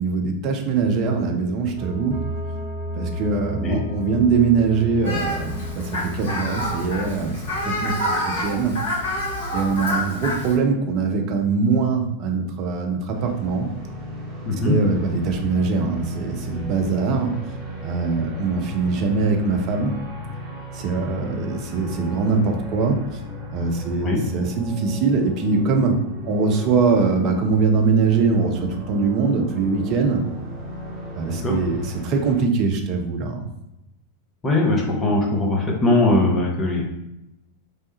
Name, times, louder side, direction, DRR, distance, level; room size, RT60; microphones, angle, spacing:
voice 1, 0.0-2.2 3.0-7.4 7.7-8.8 9.5-13.7 14.6-17.4 17.8-19.9 20.7-23.0 23.5-30.2 31.1-33.4, right 4 dB, 40° right, 3 dB, 0.5 m, -22 dB
sound 1, 0.8-7.1, equal, 65° right, 0.8 m, -33 dB
Fowl, 5.0-10.5, left 1 dB, 55° left, 1.4 m, -27 dB
sound 2, 13.1-32.4, equal, 15° right, 1.0 m, -36 dB
voice 2, 14.4-14.8 24.0-24.2 31.3-31.6 34.4-36.9, left 2 dB, 20° left, -1 dB, 0.7 m, -20 dB
3.1 x 2.2 x 2.9 m, 0.90 s
figure-of-eight pair, 90°, 0 cm